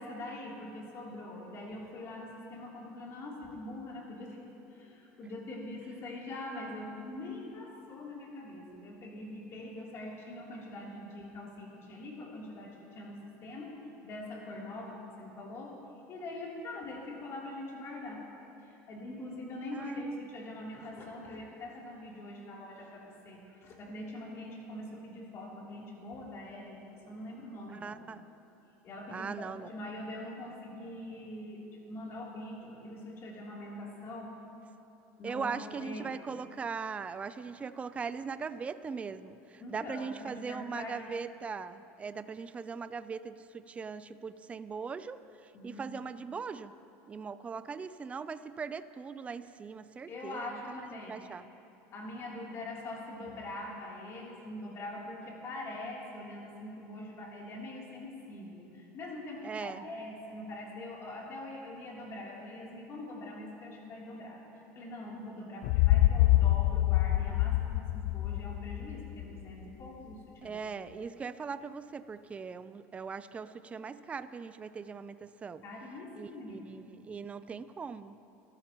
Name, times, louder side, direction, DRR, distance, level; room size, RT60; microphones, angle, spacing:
voice 1, 0.0-4.4 4.7-13.8 14.0-15.8 16.1-18.2 18.6-28.0 28.8-34.3 35.2-36.2 39.6-41.0 45.5-45.9 50.1-51.4 51.9-64.4 64.7-70.6 75.6-76.7, left 1 dB, 40° left, -3 dB, 3.2 m, -43 dB
voice 2, 19.7-20.2 27.7-28.2 29.1-29.7 35.2-46.7 47.1-50.8 51.1-51.4 59.4-59.8 70.4-75.6 76.1-78.3, right 5 dB, 20° right, 13 dB, 0.4 m, -40 dB
sound 1, 65.6-69.5, left 15 dB, 65° left, 0.4 m, -26 dB
22.0 x 14.0 x 3.0 m, 2.8 s
supercardioid pair, 125°, 7 cm